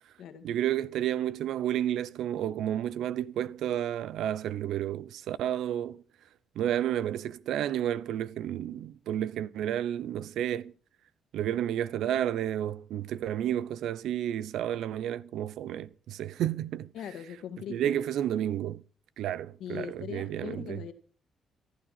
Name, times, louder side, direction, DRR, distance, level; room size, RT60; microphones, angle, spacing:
voice 1, 0.4-6.0 6.6-10.7 11.3-16.9 17.7-18.8 19.2-20.8, right 11 dB, 80° right, 0.7 m, -31 dB
voice 2, 16.9-18.1 19.6-20.9, left 9 dB, 75° left, 1.9 m, -40 dB
15.0 x 12.0 x 5.9 m
cardioid pair, 90°, 0 cm